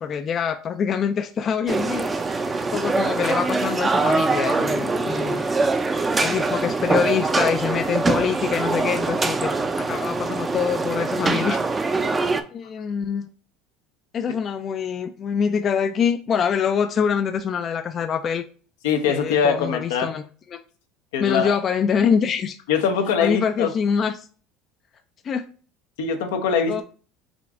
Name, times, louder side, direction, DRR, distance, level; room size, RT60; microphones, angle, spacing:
voice 1, 0.0-2.4 2.7-5.4 6.2-9.5 9.8-11.6 12.5-13.3 14.1-18.4 19.1-20.2 20.5-20.6 21.2-22.6 23.2-24.2 25.2-25.4 26.7-26.8, left 7 dB, 40° left, 8 dB, 0.3 m, -24 dB
sound 1, 1.7-12.4, right 3 dB, 20° right, 0.4 m, -23 dB
voice 2, 18.8-20.1 21.1-21.6 22.7-23.7 26.0-26.8, left 6 dB, 85° left, 5 dB, 0.7 m, -22 dB
5.0 x 2.5 x 3.5 m, 0.41 s
supercardioid pair, 100°, 0 cm